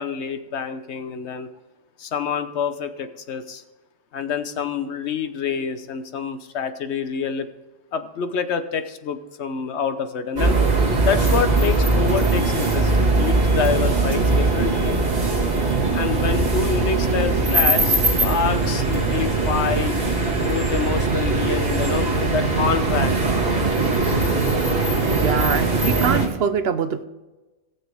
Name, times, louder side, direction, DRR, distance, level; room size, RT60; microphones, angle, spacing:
voice 1, 0.0-1.5 2.0-3.6 4.1-7.5 7.9-10.6 11.0-15.0 15.9-19.9 20.3-23.1, left 6 dB, 75° left, 10 dB, 1.1 m, -27 dB
sound 1, 10.4-26.3, right 3 dB, 35° right, 2.0 m, -20 dB
voice 2, 25.1-27.0, right 7 dB, 65° right, 11 dB, 0.9 m, -23 dB
18.0 x 7.2 x 3.5 m, 1.2 s
omnidirectional pair, 1.2 m